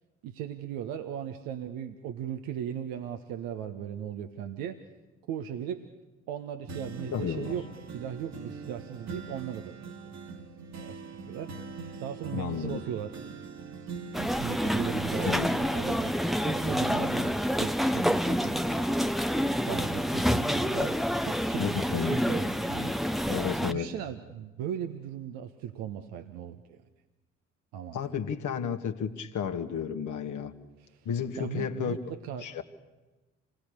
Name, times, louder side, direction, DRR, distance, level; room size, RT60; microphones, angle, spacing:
voice 1, 0.2-4.8 5.3-5.9 6.3-7.7 7.9-9.8 10.0-10.1 10.8-11.0 11.3-11.5 12.0-13.2 14.4-18.9 19.7-23.0 23.7-26.8 27.7-28.1 30.8-31.1 31.4-32.5, right 9 dB, 65° right, 6 dB, 1.4 m, -38 dB
sound 1, 6.7-18.3 18.7-20.6 21.1-21.2, right 4 dB, 45° right, 2.3 m, -44 dB
voice 2, 7.1-7.5 12.3-12.8 15.3-15.5 21.6-22.2 23.3-23.9 27.9-30.5 31.1-32.1 32.4-32.6, left 7 dB, 50° left, 6 dB, 2.1 m, -32 dB
sound 2, 14.1-23.7, equal, ahead, 1.0 m, -28 dB
28.0 x 19.5 x 6.9 m, 1.2 s
figure-of-eight pair, 45°, 38 cm